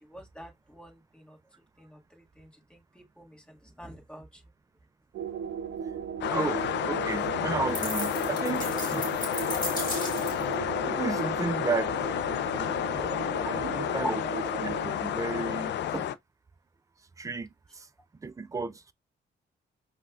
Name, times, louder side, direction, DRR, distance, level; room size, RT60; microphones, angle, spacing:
voice 1, 0.1-1.4 1.8-2.0 2.4-4.4 12.7-13.0 13.5-14.2, equal, 5° left, 1.4 m, -43 dB
sound 1, 5.1-14.9, right 6 dB, 80° right, 0.6 m, -37 dB
sound 2, 6.2-16.1, left 10 dB, 70° left, 0.4 m, -31 dB
voice 2, 6.3-9.2 10.9-12.4 13.4-14.2 14.6-16.1 17.2-18.9, right 4 dB, 20° right, 0.3 m, -34 dB
sound 3, 7.7-10.5, left 1 dB, 20° left, 1.8 m, -36 dB
5.3 x 2.3 x 2.4 m
cardioid pair, 110°, 19 cm